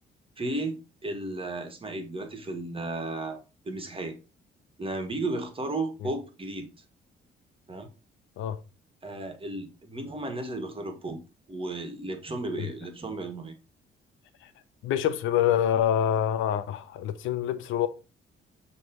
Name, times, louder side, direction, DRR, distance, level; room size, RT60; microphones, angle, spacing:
voice 1, 0.4-3.4 3.7-4.2 4.8-6.7 7.7-7.9 9.0-11.2 11.5-13.6, right 2 dB, 25° right, 1.7 m, -34 dB
voice 2, 14.8-17.9, left 10 dB, 85° left, 0.7 m, -26 dB
6.5 x 3.3 x 4.5 m
cardioid pair, 90°, 20 cm